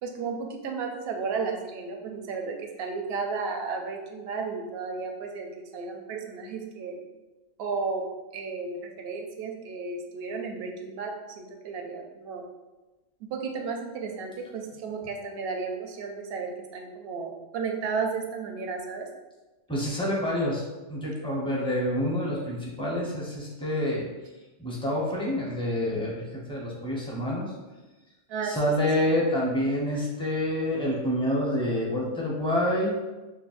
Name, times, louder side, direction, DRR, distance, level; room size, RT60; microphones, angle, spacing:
voice 1, 0.0-7.0 7.6-8.0 8.3-12.5 13.2-19.1 28.3-28.6, right 4 dB, 65° right, 2 dB, 0.7 m, -33 dB
voice 2, 19.7-20.6 20.9-24.0 24.6-27.5 28.4-32.9, left 1 dB, 5° left, -5 dB, 0.6 m, -27 dB
5.6 x 2.1 x 2.4 m, 1.1 s
omnidirectional pair, 1.3 m